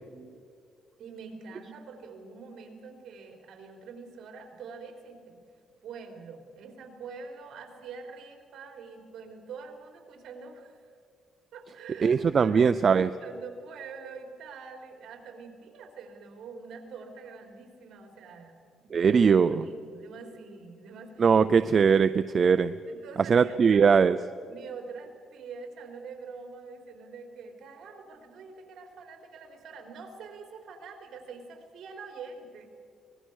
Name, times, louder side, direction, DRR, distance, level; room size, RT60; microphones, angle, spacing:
voice 1, 1.0-5.4 5.8-10.9 11.5-12.9 13.2-21.4 22.8-23.9 24.5-32.7, right 5 dB, 60° right, 4 dB, 4.1 m, -45 dB
voice 2, 12.0-13.1 18.9-19.7 21.2-22.7 23.3-24.2, right 6 dB, 35° right, 11 dB, 0.5 m, -21 dB
25.0 x 20.5 x 6.4 m, 2.2 s
cardioid pair, 150°, 0 cm